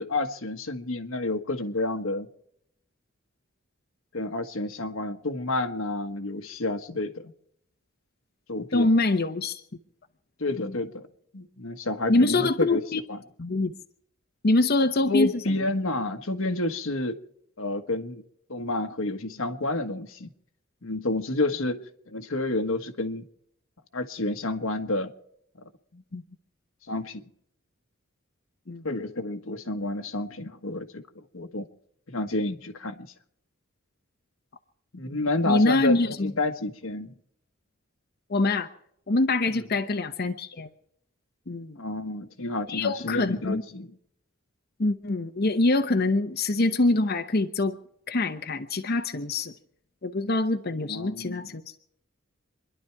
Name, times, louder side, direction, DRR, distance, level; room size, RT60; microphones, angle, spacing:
voice 1, 0.0-2.3 4.1-7.2 8.5-8.9 10.4-11.1 11.3-12.8 13.1-13.2 15.1-17.2 17.6-18.2 18.5-20.3 20.8-23.2 23.9-25.1 25.9-26.0 26.9-27.3 28.8-31.7 32.1-33.1 34.9-37.2 39.5-39.7 41.8-43.9 50.9-51.5, left 2 dB, 90° left, 1.4 m, -30 dB
voice 2, 8.7-9.6 12.1-13.0 13.4-13.7 14.4-15.3 26.1-26.2 28.7-28.8 35.5-36.3 38.3-38.7 39.1-40.7 41.5-41.8 42.7-43.6 44.8-47.8 48.1-49.5 50.0-51.6, left 2 dB, 50° left, 0.9 m, -24 dB
27.5 x 11.5 x 4.6 m
head